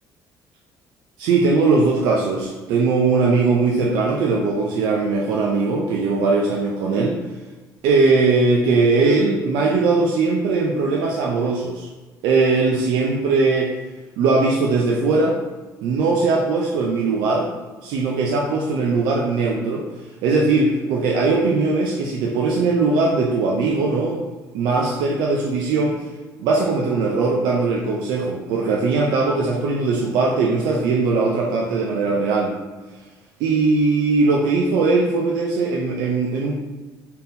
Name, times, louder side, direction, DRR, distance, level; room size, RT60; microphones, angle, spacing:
voice 1, 1.2-7.2 7.8-11.9 12.2-13.7 14.2-15.4 15.8-17.5 17.8-19.8 20.2-24.2 24.5-26.0 26.4-32.6 33.4-36.6, right 3 dB, 85° right, -2 dB, 0.5 m, -20 dB
4.2 x 3.7 x 2.6 m, 1.3 s
cardioid pair, 155°, 7 cm